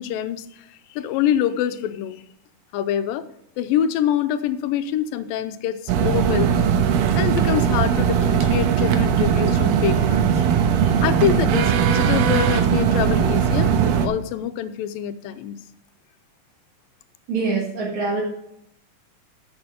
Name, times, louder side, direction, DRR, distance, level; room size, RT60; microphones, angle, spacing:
voice 1, 0.0-2.2 2.7-3.3 3.6-6.7 7.1-10.5 10.8-15.6, left 10 dB, 85° left, 11 dB, 2.4 m, -25 dB
sound 1, 5.9-14.1, right 8 dB, 90° right, 2.7 m, -19 dB
voice 2, 17.3-18.2, right 4 dB, 60° right, -6 dB, 3.2 m, -24 dB
11.5 x 6.9 x 5.1 m, 0.79 s
omnidirectional pair, 4.0 m